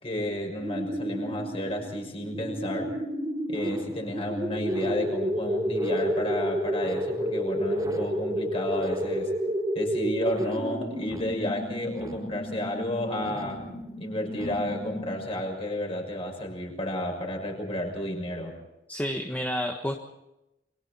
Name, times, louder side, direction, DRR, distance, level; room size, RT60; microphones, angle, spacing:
voice 1, 0.0-3.0 3.5-9.3 9.7-13.6 14.0-18.6, left 1 dB, 35° left, 2 dB, 6.3 m, -32 dB
sound 1, 0.6-15.4, equal, 20° right, 4.3 m, -31 dB
voice 2, 18.9-20.0, equal, 10° left, 2 dB, 1.4 m, -30 dB
29.0 x 23.5 x 4.3 m, 0.91 s
head